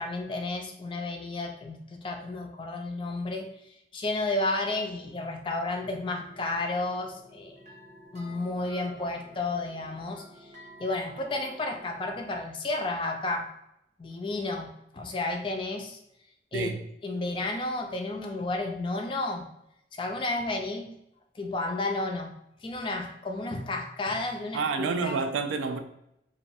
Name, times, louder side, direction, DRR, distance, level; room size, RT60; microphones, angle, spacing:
voice 1, 0.0-3.5 3.9-7.6 8.1-10.5 10.8-13.5 14.0-16.0 16.5-16.7 17.0-19.5 19.9-20.9 21.4-22.3 22.6-25.1, left 2 dB, 25° left, 0.3 m, -32 dB
sound 1, 5.7-12.3, equal, 40° right, 0.6 m, -51 dB
voice 2, 16.5-16.8 24.5-25.8, right 4 dB, 90° right, 0.3 m, -29 dB
3.0 x 2.2 x 2.6 m
head